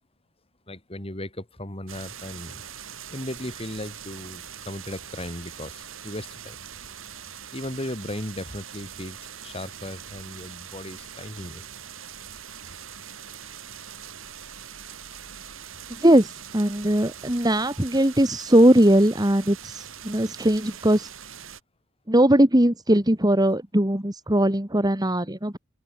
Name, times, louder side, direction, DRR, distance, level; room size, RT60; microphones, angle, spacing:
voice 1, 0.7-6.6 7.5-11.6, left 1 dB, 30° left, 3.2 m, -36 dB
sound 1, 1.9-21.6, right 8 dB, 75° right, 7.2 m, -42 dB
voice 2, 16.0-21.1 22.1-25.6, right 1 dB, 20° right, 2.3 m, -20 dB
open air
head